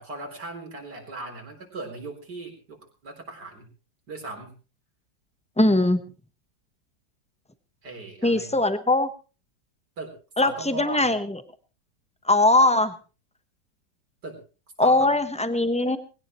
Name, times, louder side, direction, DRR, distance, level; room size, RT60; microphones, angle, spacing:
voice 1, 0.0-2.8 3.0-3.7 4.1-4.5 7.8-8.6 10.0-11.1 14.2-14.4 14.8-15.1, right 2 dB, 65° right, 2 dB, 4.5 m, -38 dB
voice 2, 5.6-6.0 8.2-9.1 10.4-11.4 12.3-12.9 14.8-16.0, left 2 dB, 5° left, 10 dB, 0.7 m, -21 dB
20.5 x 17.0 x 3.1 m, 0.34 s
omnidirectional pair, 2.0 m